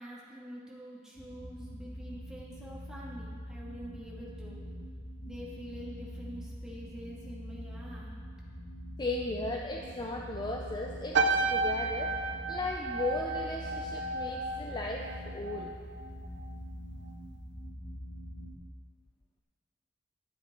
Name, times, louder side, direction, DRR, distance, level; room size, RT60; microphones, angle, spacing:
voice 1, 0.0-4.6 5.3-8.1, equal, 5° right, -7 dB, 2.1 m, -46 dB
sound 1, 1.2-18.6, equal, 35° left, 2.1 m, -44 dB
voice 2, 9.0-11.2 11.5-12.2 12.5-15.7, left 2 dB, 20° left, 1 dB, 0.5 m, -36 dB
sound 2, 11.1-15.8 16.0-16.4, right 3 dB, 65° right, 0.6 m, -32 dB
11.0 x 9.1 x 4.5 m, 2.1 s
head